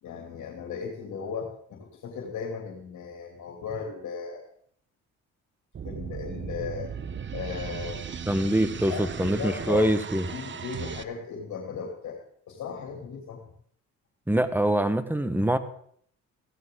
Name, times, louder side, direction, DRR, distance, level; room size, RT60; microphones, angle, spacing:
voice 1, 0.0-4.4 5.8-6.9 7.3-8.0 8.9-9.9 10.2-12.2 12.5-13.4, left 6 dB, 75° left, 1 dB, 2.8 m, -36 dB
sound 1, 5.7-11.0, right 7 dB, 40° right, 1.0 m, -37 dB
voice 2, 8.3-10.3 14.3-15.6, right 1 dB, 5° right, 11 dB, 1.3 m, -24 dB
16.5 x 14.5 x 3.8 m, 0.62 s
cardioid pair, 90°, 30 cm